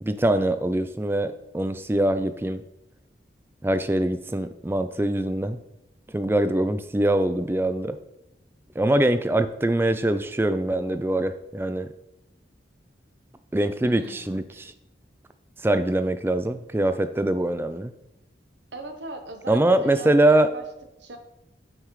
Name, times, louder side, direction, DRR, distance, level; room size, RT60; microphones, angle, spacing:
voice 1, 0.0-2.6 3.6-5.6 6.1-8.0 8.8-11.9 13.5-14.7 15.6-17.9 19.5-20.5, right 1 dB, 10° right, 10 dB, 0.3 m, -23 dB
voice 2, 13.8-14.3 18.7-20.6 21.0-21.2, right 2 dB, 75° right, 6 dB, 1.0 m, -39 dB
8.7 x 5.7 x 3.2 m, 0.90 s
head